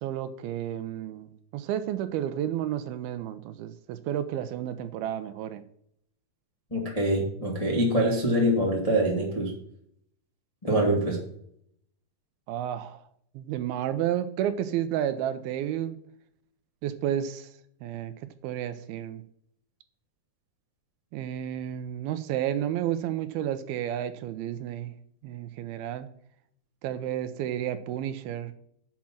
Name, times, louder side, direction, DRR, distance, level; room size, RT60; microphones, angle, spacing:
voice 1, 0.0-5.6 12.5-13.0 13.4-16.0 16.8-17.5 17.8-18.1 18.4-19.2 21.1-24.9 25.2-26.1 26.8-28.5, right 11 dB, 80° right, 11 dB, 2.4 m, -31 dB
voice 2, 6.7-9.5 10.6-11.2, right 1 dB, 25° left, -2 dB, 0.7 m, -24 dB
7.5 x 5.9 x 7.1 m, 0.70 s
omnidirectional pair, 4.6 m